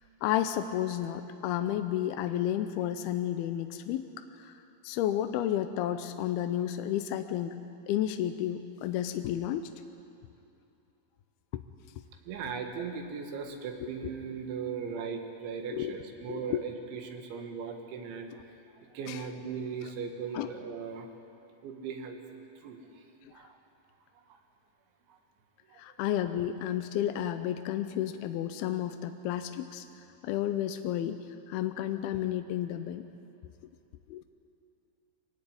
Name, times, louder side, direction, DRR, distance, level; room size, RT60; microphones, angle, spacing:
voice 1, 0.2-4.1 4.4-4.5 4.8-7.6 7.9-9.7 11.5-11.6 13.8-13.9 15.7-15.9 16.3-16.6 19.1-19.2 20.3-20.5 25.8-29.9 30.2-33.1 34.1-34.2, left 11 dB, 80° left, 8 dB, 2.3 m, -31 dB
voice 2, 12.2-18.4 18.8-21.1 21.6-23.0 23.3-23.6 24.2-24.4 25.1-25.2 25.7-25.8, right 6 dB, 85° right, 4 dB, 4.1 m, -38 dB
24.0 x 16.0 x 9.6 m, 2.8 s
omnidirectional pair, 5.2 m